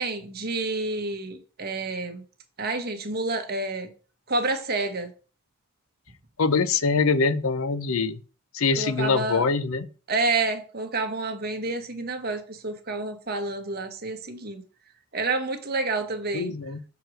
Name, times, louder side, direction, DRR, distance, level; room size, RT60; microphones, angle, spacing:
voice 1, 0.0-2.2 2.6-3.9 4.3-5.1 8.8-9.5 10.1-14.6 15.1-16.5, right 3 dB, 45° right, 1.3 m, -29 dB
voice 2, 6.4-8.2 8.5-9.9 16.3-16.8, left 4 dB, 65° left, 0.6 m, -24 dB
6.0 x 4.6 x 6.3 m
head